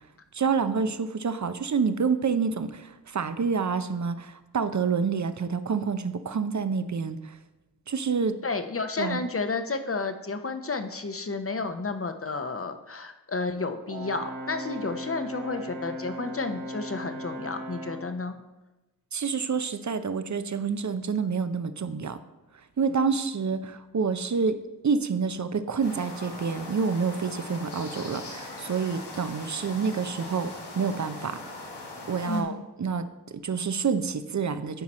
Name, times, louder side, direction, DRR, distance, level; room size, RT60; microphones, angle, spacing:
voice 1, 0.3-7.4 7.9-8.3 9.0-9.2 19.1-22.2 22.8-24.6 24.8-31.4 32.1-33.1 33.3-34.8, right 5 dB, 45° right, 11 dB, 0.7 m, -28 dB
voice 2, 8.4-18.4 32.3-32.6, left 3 dB, 35° left, 8 dB, 0.9 m, -31 dB
Brass instrument, 13.9-18.1, equal, 85° right, 2.8 m, -37 dB
sound 1, 25.8-32.4, left 2 dB, 80° left, 1.7 m, -40 dB
11.5 x 4.7 x 4.3 m, 1.1 s
cardioid pair, 40°, 40 cm